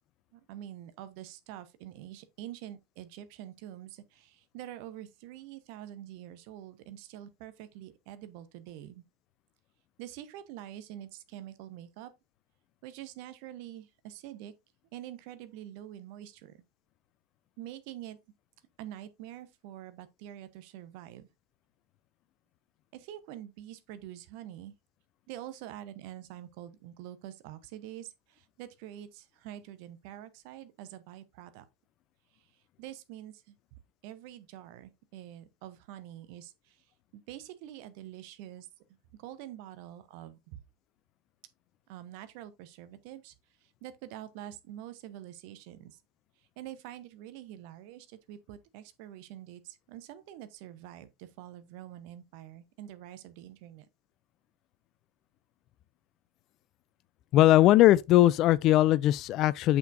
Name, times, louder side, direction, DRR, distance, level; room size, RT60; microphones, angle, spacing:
voice 1, 0.3-9.0 10.0-12.1 12.8-14.5 14.9-16.6 17.6-18.2 18.8-21.3 22.9-24.7 25.3-31.6 32.8-33.6 34.0-36.8 37.1-38.7 39.2-40.6 41.9-43.3 43.6-46.0 46.6-53.9, right 12 dB, 55° right, 0.8 m, -46 dB
voice 2, 57.3-59.8, left 14 dB, 45° left, 0.3 m, -20 dB
6.8 x 5.7 x 2.5 m
figure-of-eight pair, 80°, 0 cm